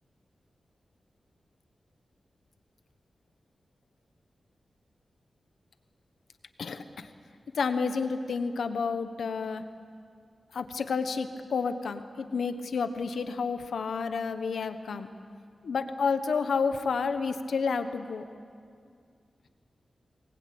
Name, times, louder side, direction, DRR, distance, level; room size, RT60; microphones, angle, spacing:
voice 1, 6.6-7.1 7.5-9.6 10.5-15.1 15.6-18.3, left 5 dB, 85° left, 9 dB, 1.2 m, -30 dB
23.0 x 20.0 x 8.7 m, 2.2 s
wide cardioid pair, 145°, 0 cm